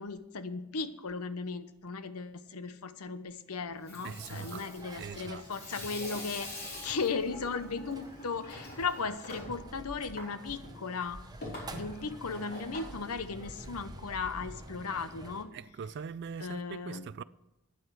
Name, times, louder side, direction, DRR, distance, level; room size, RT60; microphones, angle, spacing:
voice 1, 0.0-11.2 11.7-15.5 16.4-17.1, left 4 dB, 85° left, 0.8 m, -36 dB
Water tap faucet / Sink (filling or washing), 3.7-13.9, left 1 dB, 45° left, 4.4 m, -45 dB
sound 1, 4.0-15.4, right 1 dB, 20° right, 0.8 m, -49 dB
voice 2, 4.0-5.5 8.8-8.9 15.5-17.2, right 6 dB, 50° right, 0.3 m, -42 dB
9.8 x 7.9 x 7.5 m
head